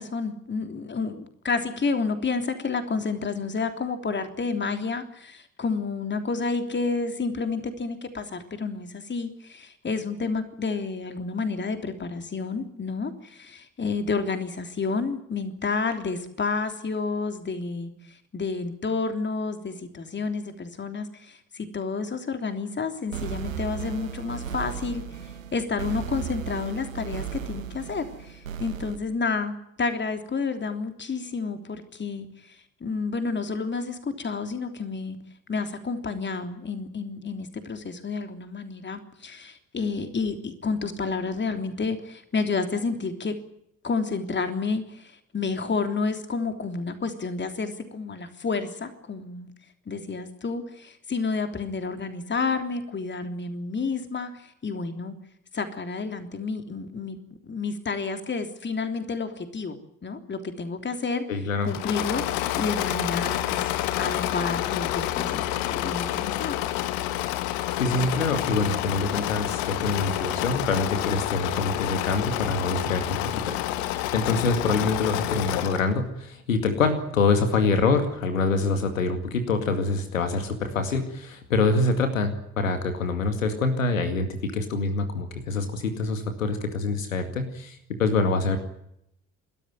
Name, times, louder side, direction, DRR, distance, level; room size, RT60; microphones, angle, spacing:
voice 1, 0.0-25.0 25.5-32.3 32.8-35.2 35.5-43.4 43.8-49.5 49.9-55.1 55.5-57.2 57.4-59.8 60.0-61.2 61.6-62.2 62.5-66.6, left 4 dB, 30° left, 8 dB, 3.4 m, -30 dB
sound 1, 23.1-29.0, right 8 dB, 80° right, 1.3 m, -35 dB
voice 2, 61.3-61.8 67.8-88.6, left 3 dB, 80° left, 8 dB, 2.3 m, -25 dB
Engine / Mechanisms, 61.7-75.9, left 14 dB, 60° left, 1.5 m, -28 dB
29.5 x 13.5 x 9.4 m, 0.76 s
figure-of-eight pair, 50°, 39 cm